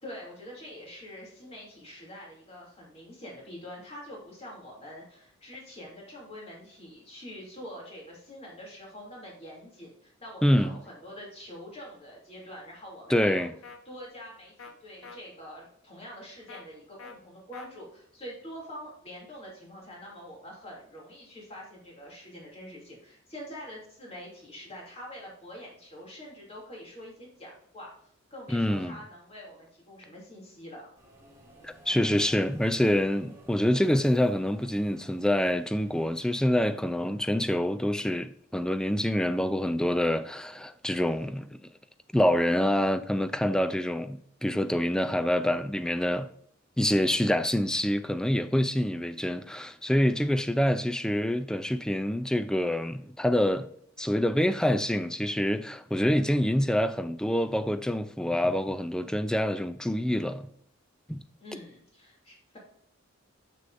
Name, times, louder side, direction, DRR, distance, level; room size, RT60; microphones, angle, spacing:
voice 1, 0.0-13.5 13.9-27.9 28.3-30.9 61.4-62.6, equal, 30° left, 2.7 m, -45 dB
voice 2, 10.4-10.8 13.1-13.5 28.5-29.0 31.6-41.6 42.1-46.3 46.8-53.7 54.0-60.5 61.1-61.2, equal, 5° left, 0.3 m, -26 dB
sound 1, 13.6-13.8 14.6-14.7 15.0-15.2 16.5-16.6 17.0-17.2 17.5-17.7, left 4 dB, 85° left, 0.9 m, -45 dB
Subway metro underground, 31.0-37.2, right 1 dB, 15° right, 1.8 m, -55 dB
7.0 x 6.5 x 2.6 m
head